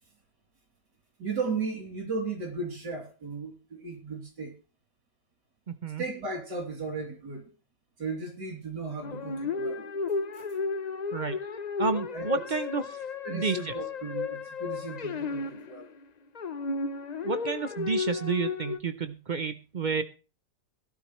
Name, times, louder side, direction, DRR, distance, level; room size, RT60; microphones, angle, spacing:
voice 1, 1.2-4.6 6.0-7.5 8.0-9.8 10.3-10.4 12.1-12.3 13.2-15.9, right 4 dB, 85° right, 0 dB, 3.7 m, -35 dB
voice 2, 5.7-6.0 11.1-11.4 11.8-13.0 13.3-13.7 17.2-20.0, right 5 dB, 60° right, 10 dB, 0.4 m, -30 dB
sound 1, 9.0-16.0 16.3-18.8, left 4 dB, 90° left, 0.3 m, -33 dB
17.5 x 12.0 x 3.1 m, 0.34 s
omnidirectional pair, 1.8 m